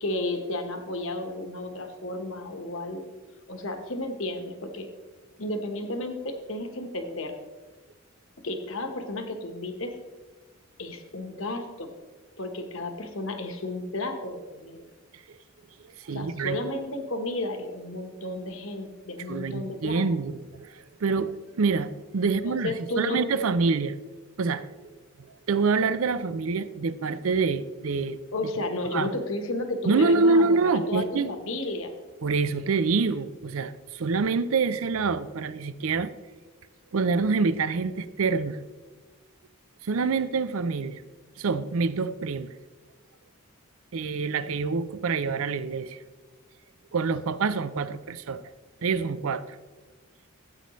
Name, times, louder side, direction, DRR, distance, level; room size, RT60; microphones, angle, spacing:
voice 1, 0.0-3.1 3.5-4.9 5.4-7.4 8.4-10.0 10.8-11.9 12.4-14.9 16.1-20.0 22.4-23.4 28.3-31.9, left 1 dB, 65° left, 6 dB, 1.2 m, -33 dB
voice 2, 16.0-16.6 19.3-24.0 24.4-24.9 25.5-28.5 28.9-29.1 29.8-31.3 32.2-36.1 36.9-38.6 39.8-41.0 41.4-42.5 43.9-46.0 46.9-48.4 48.8-49.6, right 4 dB, 70° right, 14 dB, 0.5 m, -26 dB
14.0 x 8.3 x 3.1 m, 1.3 s
head